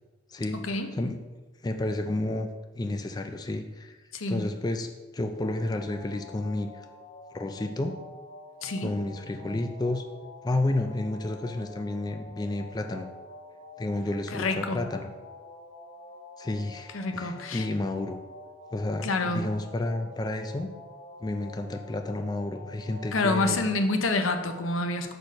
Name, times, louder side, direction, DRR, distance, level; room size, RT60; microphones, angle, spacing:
voice 1, 0.6-0.9 4.1-4.4 8.6-8.9 14.3-14.8 16.9-17.7 19.0-19.5 23.1-25.2, left 2 dB, 90° left, 6 dB, 0.7 m, -28 dB
voice 2, 1.6-2.5 2.7-4.0 4.3-4.9 5.1-6.9 7.3-8.0 8.8-10.1 10.4-13.1 13.8-15.1 16.4-18.2 18.7-20.7 21.2-23.6, left 2 dB, 20° left, 6 dB, 0.3 m, -31 dB
sound 1, 5.4-23.6, left 2 dB, 45° left, 1.2 m, -47 dB
6.4 x 4.4 x 5.2 m, 1.3 s
head